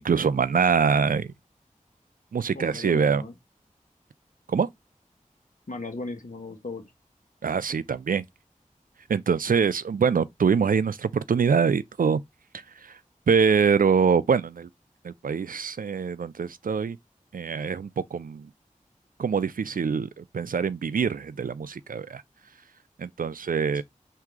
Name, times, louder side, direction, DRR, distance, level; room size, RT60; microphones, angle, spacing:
voice 1, 0.0-1.3 2.3-3.2 4.5-4.7 7.4-8.2 9.1-12.2 12.8-13.0 13.3-14.7 15.0-17.0 17.3-18.5 19.2-22.2 23.0-23.8, right 6 dB, 85° right, 0.4 m, -24 dB
voice 2, 2.5-3.3 5.7-6.9 23.7-23.8, left 2 dB, 70° left, 1.3 m, -37 dB
3.6 x 2.7 x 4.6 m
wide cardioid pair, 60°, 14 cm